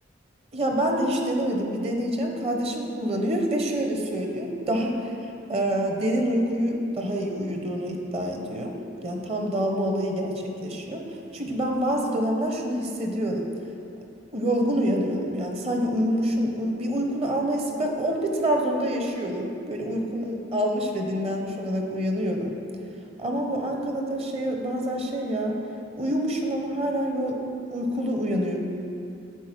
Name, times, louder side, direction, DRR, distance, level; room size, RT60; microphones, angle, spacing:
voice 1, 0.5-8.7 9.0-11.0 11.3-13.5 14.3-22.5 23.2-25.6 26.0-27.4 27.7-28.6, equal, 35° right, 1 dB, 0.8 m, -26 dB
9.3 x 4.1 x 6.0 m, 2.6 s
head